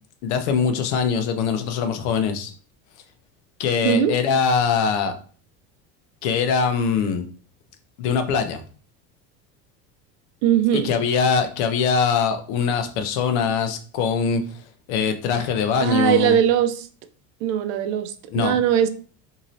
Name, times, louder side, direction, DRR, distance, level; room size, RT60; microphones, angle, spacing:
voice 1, 0.2-2.5 3.6-5.1 6.2-7.2 8.0-8.6 10.7-14.4 14.9-16.4 18.3-18.5, left 6 dB, 85° left, 0.6 m, -22 dB
voice 2, 10.4-10.9 15.8-16.9 17.4-18.9, right 9 dB, 70° right, 0.5 m, -20 dB
3.0 x 2.8 x 2.6 m
cardioid pair, 150°, 33 cm